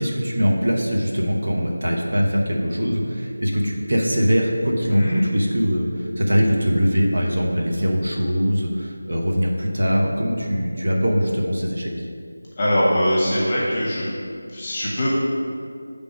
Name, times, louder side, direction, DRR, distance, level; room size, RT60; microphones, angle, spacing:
voice 1, 0.0-12.0, equal, 55° right, -1 dB, 1.0 m, -22 dB
voice 2, 12.6-14.0 14.5-15.1, equal, 20° left, -7 dB, 1.0 m, -21 dB
6.4 x 3.6 x 5.2 m, 2.4 s
figure-of-eight pair, 175°, 0 cm